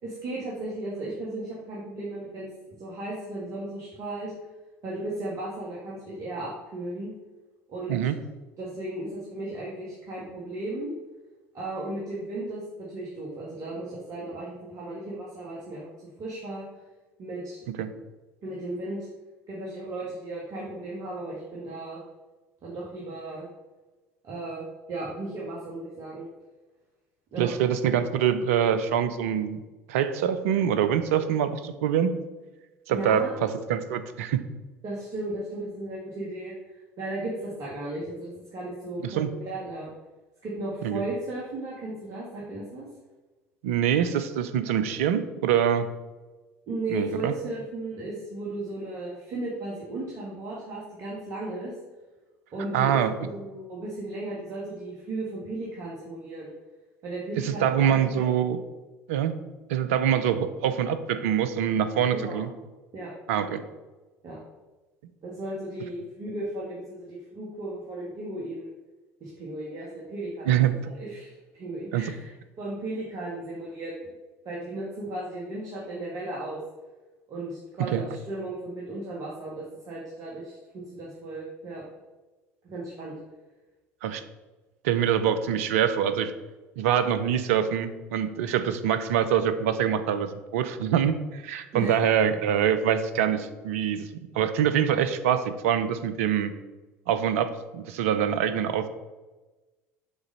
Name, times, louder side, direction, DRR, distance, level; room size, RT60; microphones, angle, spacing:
voice 1, 0.0-4.3 4.8-7.1 7.7-8.1 8.6-10.9 11.5-15.9 16.2-16.7 17.2-17.7 18.4-19.1 19.5-22.0 22.6-23.5 24.2-26.3 27.3-27.5 32.9-33.3 34.8-39.9 40.4-42.9 46.7-51.7 52.5-53.0 53.3-56.5 57.0-58.3 62.1-62.4 62.9-63.1 63.5-63.6 64.2-64.4 65.2-68.7 69.2-72.3 72.6-74.1 74.5-76.6 77.3-81.8 82.6-83.1 91.7-92.0, right 2 dB, 50° right, -5 dB, 1.8 m, -35 dB
voice 2, 27.4-29.6 29.9-32.1 32.9-34.4 39.0-39.3 40.8-41.0 43.6-45.9 46.9-47.3 52.7-53.1 57.4-58.6 59.1-59.3 59.7-62.5 63.3-63.6 70.5-70.7 71.9-72.0 77.9-78.0 84.0-84.2 84.8-86.3 86.8-94.1 94.3-96.5 97.1-98.9, right 9 dB, 75° right, 11 dB, 0.6 m, -25 dB
7.1 x 4.0 x 5.4 m, 1.2 s
hypercardioid pair, 65°, 7 cm